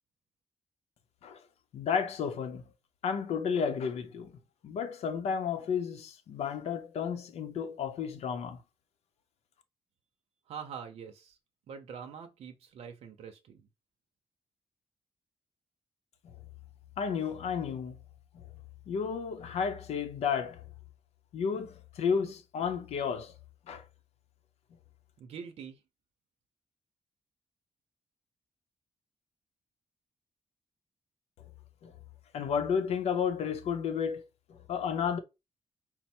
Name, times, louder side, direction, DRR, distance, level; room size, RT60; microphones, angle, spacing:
voice 1, 1.7-2.6 3.0-4.3 4.6-8.6 16.2-16.3 17.0-18.0 18.3-18.4 18.9-20.6 21.3-23.3 23.7-23.8 31.8-31.9 32.3-34.2 34.5-35.2, left 6 dB, 85° left, 0.6 m, -32 dB
voice 2, 10.5-11.4 11.7-13.7 25.2-25.8, right 7 dB, 75° right, 0.6 m, -44 dB
4.4 x 2.0 x 4.2 m
wide cardioid pair, 170°, 11 cm